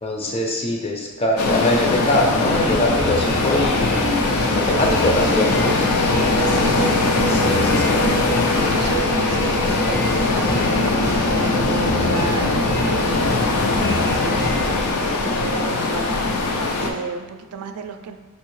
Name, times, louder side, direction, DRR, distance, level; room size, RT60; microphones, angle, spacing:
voice 1, 0.0-6.1 7.2-8.0, left 1 dB, 25° left, 1 dB, 0.4 m, -23 dB
sound 1, 1.4-16.9, left 3 dB, 85° left, 0.5 m, -21 dB
sound 2, 2.4-14.9, equal, 65° left, 1.2 m, -27 dB
voice 2, 6.4-7.0 8.7-15.1 15.3-16.1 16.8-18.2, right 4 dB, 85° right, 6 dB, 0.3 m, -33 dB
4.3 x 2.7 x 3.1 m, 1.3 s
head